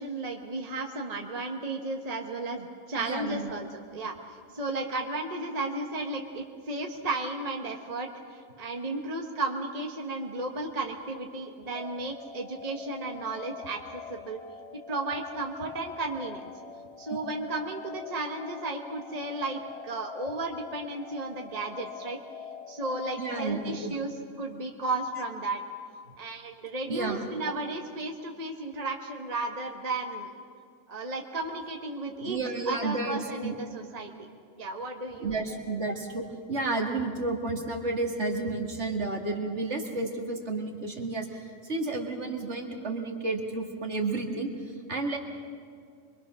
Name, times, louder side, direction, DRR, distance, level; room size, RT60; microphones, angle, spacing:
voice 1, 0.0-4.2 4.5-14.4 14.9-16.5 17.0-22.2 22.7-25.6 26.2-30.3 30.9-32.4 32.7-34.1 34.6-35.3, right 2 dB, 30° right, 2 dB, 1.5 m, -34 dB
voice 2, 3.0-3.5 9.1-9.3 17.1-17.2 23.2-24.0 26.9-27.3 32.2-33.6 35.2-45.2, right 3 dB, 55° right, 2 dB, 2.5 m, -31 dB
sound 1, 11.7-23.8, left 6 dB, 55° left, 1.4 m, -45 dB
25.5 x 23.5 x 6.3 m, 2.2 s
omnidirectional pair, 1.4 m